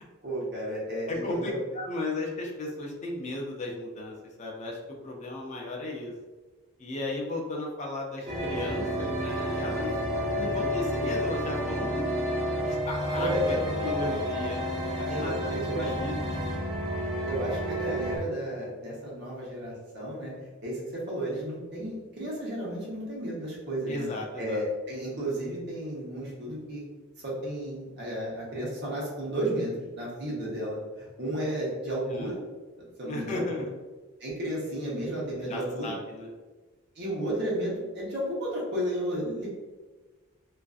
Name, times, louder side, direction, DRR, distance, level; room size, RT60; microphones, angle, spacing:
voice 1, 0.2-1.6 10.2-10.5 13.2-13.6 15.1-15.9 17.3-20.3 20.6-24.1 24.4-26.8 27.2-32.4 32.8-33.6 34.2-35.9 37.0-39.5, right 1 dB, 55° right, -5 dB, 0.9 m, -33 dB
voice 2, 1.1-6.1 6.8-10.0 10.4-12.1 12.7-13.6 13.8-15.3 15.7-16.6 23.9-24.6 32.0-32.3 33.0-33.7 35.5-36.3, left 2 dB, 35° left, 0 dB, 0.4 m, -35 dB
sound 1, 8.3-18.2, equal, 30° right, 0.6 m, -31 dB
sound 2, 8.4-17.6, left 1 dB, 85° right, 0.8 m, -36 dB
2.4 x 2.4 x 2.3 m, 1.3 s
head